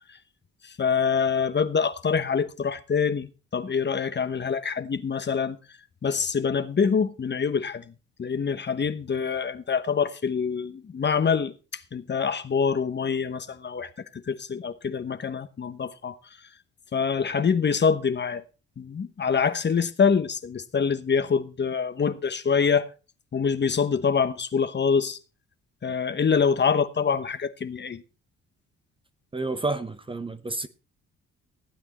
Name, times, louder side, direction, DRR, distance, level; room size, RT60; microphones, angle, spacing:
voice 1, 0.8-5.6 6.0-7.8 8.2-11.5 11.9-13.9 14.3-16.2 16.9-18.4 18.8-22.9 23.3-25.2 25.8-28.0, left 6 dB, 35° left, 1.1 m, -25 dB
voice 2, 29.3-30.7, right 3 dB, 15° right, 1.0 m, -30 dB
15.0 x 8.8 x 4.2 m
cardioid pair, 90°, 30 cm